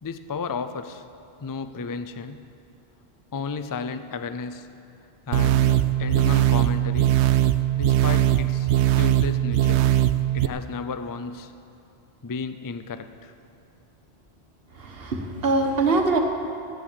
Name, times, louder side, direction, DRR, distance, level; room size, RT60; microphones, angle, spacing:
voice 1, 0.0-1.0 1.4-2.5 3.3-4.7 5.3-7.2 7.7-8.7 9.0-9.9 10.3-11.5 12.2-13.3, left 5 dB, 35° left, 10 dB, 0.3 m, -33 dB
sound 1, 5.3-10.5, right 12 dB, 80° right, 0.8 m, -20 dB
voice 2, 14.8-16.2, right 3 dB, 60° right, 3 dB, 1.5 m, -23 dB
14.0 x 10.0 x 7.2 m, 2.6 s
omnidirectional pair, 1.1 m